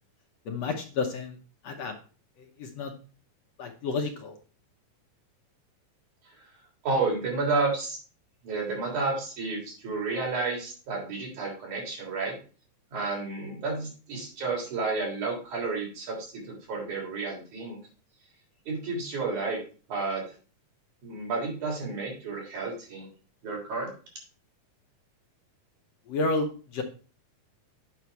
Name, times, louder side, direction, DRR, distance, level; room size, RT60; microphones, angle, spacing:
voice 1, 0.5-1.4 1.6-1.9 2.4-2.9 3.6-4.4 26.1-26.8, left 3 dB, 65° left, 3 dB, 1.9 m, -31 dB
voice 2, 6.8-8.0 8.4-12.4 12.9-17.8 18.7-19.6 19.9-20.3 21.0-23.1 23.4-23.9, right 3 dB, 70° right, -2 dB, 4.8 m, -31 dB
8.5 x 5.7 x 4.6 m, 0.37 s
omnidirectional pair, 3.5 m